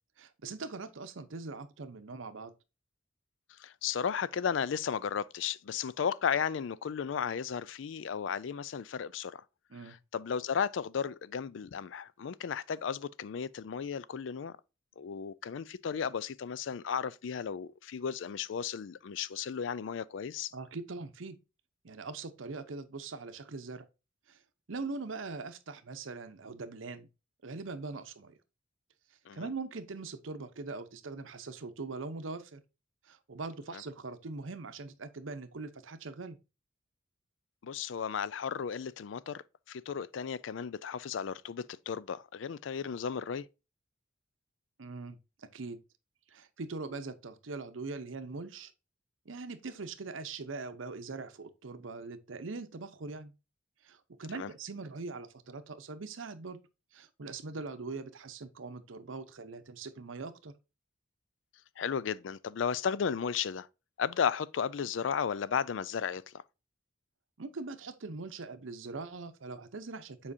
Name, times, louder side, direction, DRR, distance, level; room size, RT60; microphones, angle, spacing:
voice 1, 0.2-2.5 9.7-10.0 20.5-21.4 21.8-23.9 24.3-24.4 24.7-27.1 27.4-28.4 29.3-32.6 33.0-36.4 44.8-45.8 46.3-48.7 49.3-53.3 53.8-56.6 56.9-60.5 67.4-70.3, right 3 dB, 85° right, 0.8 m, -42 dB
voice 2, 3.6-9.4 9.9-14.5 15.0-20.5 29.3-29.5 33.7-33.8 37.6-39.4 39.7-43.5 54.3-54.5 61.8-63.7 64.0-66.3, left 7 dB, 70° left, 0.4 m, -34 dB
7.4 x 4.9 x 2.7 m
head